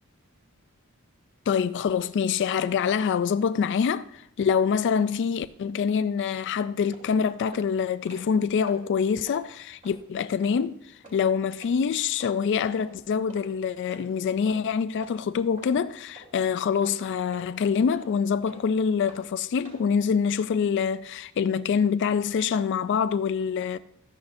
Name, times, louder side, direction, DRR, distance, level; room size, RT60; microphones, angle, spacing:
voice 1, 1.5-10.8 11.1-23.8, left 6 dB, 55° left, 0.3 m, -25 dB
sound 1, 6.3-6.4 6.9-7.0 7.5-7.6 7.9-8.4 8.7-8.8 9.2-9.4 9.8-10.0 10.4-10.6 11.0-11.2 11.6-11.7 12.2-12.3 12.8-12.9 13.3-13.5 13.9-14.0 14.5-14.6 15.0-15.1 15.6-15.7 16.2-16.3 16.8-16.9 17.3-17.5 17.9-18.0 18.5-18.6 19.1-19.2 19.6-19.8, right 1 dB, 35° right, 3.8 m, -47 dB
13.5 x 10.0 x 2.6 m
head